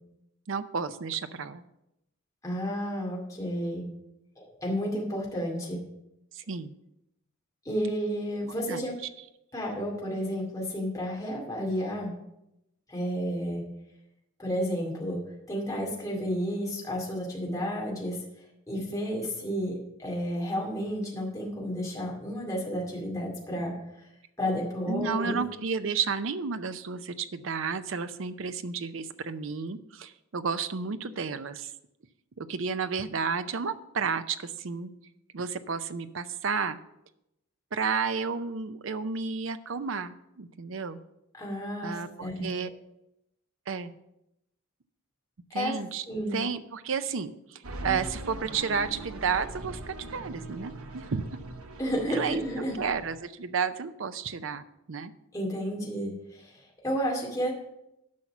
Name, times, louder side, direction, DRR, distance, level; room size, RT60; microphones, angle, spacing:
voice 1, 0.5-1.6 6.3-6.7 8.7-8.9 24.9-31.7 32.4-34.9 35.3-36.8 37.7-41.0 41.8-42.7 43.7-44.0 45.5-46.0 46.3-51.2 52.1-52.4 52.8-55.1, right 5 dB, 60° right, 12 dB, 0.6 m, -32 dB
voice 2, 2.4-3.9 4.4-5.8 7.6-8.9 9.5-12.1 12.9-13.6 14.4-15.2 15.5-18.2 18.7-23.7 24.4-25.4 41.4-42.5 45.5-45.8 46.1-46.4 51.8-52.8 55.3-56.5 56.8-57.5, equal, 15° left, -2 dB, 2.3 m, -31 dB
sound 1, 47.6-53.2, right 2 dB, 80° right, 1.0 m, -41 dB
10.5 x 5.8 x 5.9 m, 0.85 s
head